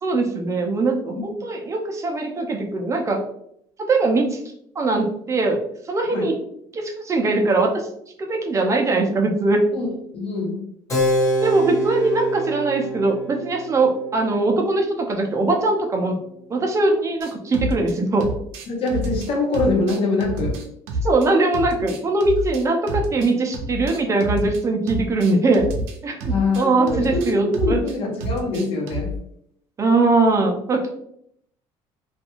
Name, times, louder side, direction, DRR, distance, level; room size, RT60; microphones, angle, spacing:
voice 1, 0.0-3.2 3.8-4.4 4.8-5.6 5.9-6.3 6.7-7.8 8.2-9.6 11.4-16.2 16.5-18.3 21.0-25.7 26.0-27.8 29.8-31.0, right 2 dB, 30° right, 2 dB, 0.4 m, -21 dB
voice 2, 9.7-10.7 18.7-20.6 26.3-29.2, left 3 dB, 65° left, -1 dB, 0.9 m, -24 dB
Keyboard (musical), 10.9-17.0, right 1 dB, 30° left, 0.9 m, -27 dB
sound 1, 17.2-17.9 18.2-21.3 21.5-24.6 24.9-29.2, equal, 90° right, 0.5 m, -29 dB
2.4 x 2.2 x 2.9 m, 0.70 s
cardioid pair, 115°, 11 cm